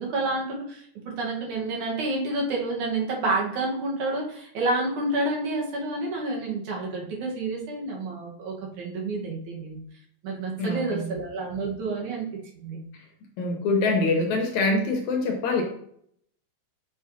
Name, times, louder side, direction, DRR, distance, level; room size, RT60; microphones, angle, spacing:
voice 1, 0.0-9.8 10.2-12.3 12.5-12.8, right 2 dB, 70° right, -2 dB, 2.8 m, -29 dB
voice 2, 10.6-11.2 13.4-15.6, left 3 dB, 70° left, 2 dB, 2.1 m, -24 dB
7.4 x 5.7 x 2.8 m, 0.66 s
omnidirectional pair, 3.8 m